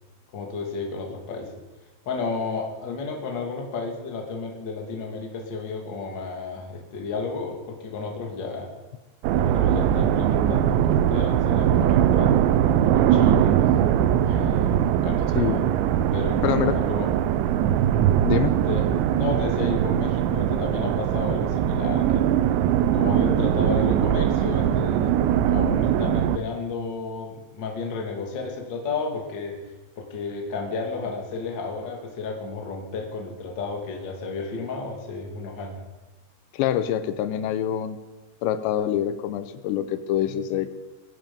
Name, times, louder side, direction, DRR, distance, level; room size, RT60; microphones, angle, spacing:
voice 1, 0.3-1.5 2.1-8.7 9.3-13.6 14.3-15.6 16.1-17.1 18.5-18.9 19.1-22.3 22.9-29.6 30.0-35.8, left 4 dB, 40° left, 1 dB, 1.8 m, -32 dB
sound 1, 9.2-26.4, right 10 dB, 90° right, 3.0 m, -21 dB
voice 2, 15.4-15.7 16.4-16.8 18.2-18.6 36.5-38.0 38.4-40.7, left 11 dB, 90° left, 11 dB, 3.0 m, -25 dB
21.0 x 10.5 x 5.3 m, 1.2 s
omnidirectional pair, 5.1 m